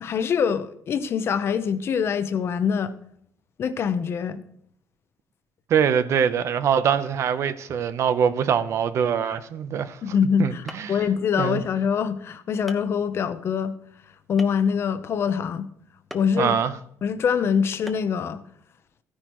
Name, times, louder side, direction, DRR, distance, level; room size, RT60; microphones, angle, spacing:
voice 1, 0.0-2.9 3.6-4.4 10.0-13.7 14.3-15.7 16.1-16.6 17.0-18.4, left 7 dB, 45° left, 0.8 m, -24 dB
voice 2, 5.7-10.0 10.4-10.9 11.4-11.6 16.4-16.7, right 8 dB, 55° right, 0.8 m, -23 dB
sound 1, 10.3-10.4 10.7-11.1 11.9-12.0 12.7-12.9 14.4-14.8 16.1-16.4 17.9-18.2, equal, ahead, 1.0 m, -40 dB
14.5 x 9.9 x 3.1 m
cardioid pair, 135°, 6 cm